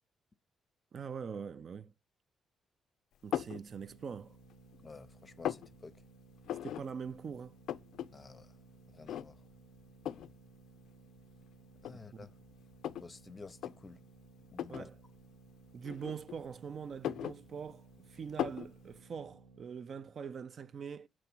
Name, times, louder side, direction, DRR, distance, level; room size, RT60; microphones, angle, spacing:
voice 1, 0.9-1.9 3.2-4.3 6.6-7.6 11.9-12.3 14.7-15.0 15.7-21.1, right 6 dB, 50° right, 0.4 m, -43 dB
sound 1, 3.3-3.6 4.2-4.8 5.1-5.7 6.5-6.8 7.2-7.3 7.5-8.1 8.4-8.5 9.1-9.5 10.1-10.3 11.2-11.3 11.8-13.1 13.5-13.7 14.5-14.9 15.8-16.5 16.9-17.9 18.4-18.7, left 11 dB, 75° left, 0.3 m, -38 dB
sound 2, 3.7-19.6, right 3 dB, 90° right, 1.1 m, -59 dB
voice 2, 4.8-6.0 8.1-8.5 8.9-9.4 11.8-12.3 12.9-14.0 14.5-14.9, left 4 dB, 30° left, 0.6 m, -51 dB
6.9 x 3.1 x 6.0 m
cardioid pair, 90°, 0 cm